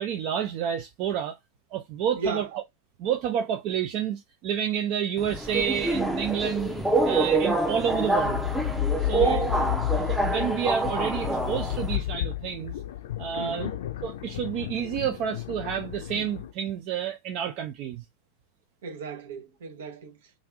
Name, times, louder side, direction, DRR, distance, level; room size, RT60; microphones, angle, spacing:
voice 1, 0.0-1.4 1.7-2.6 3.0-6.8 7.0-8.4 9.0-9.4 10.0-12.7 13.2-13.6 14.0-18.0, right 8 dB, 40° right, 0.5 m, -29 dB
voice 2, 2.2-2.5 9.1-9.6 13.3-13.8 18.8-20.2, right 4 dB, 60° right, 0.9 m, -35 dB
Subway metro underground, 5.2-12.0, right 2 dB, 5° right, 0.6 m, -26 dB
sound 1, 7.7-16.5, left 13 dB, 55° left, 0.5 m, -32 dB
3.3 x 2.5 x 3.5 m
figure-of-eight pair, 90°, 0 cm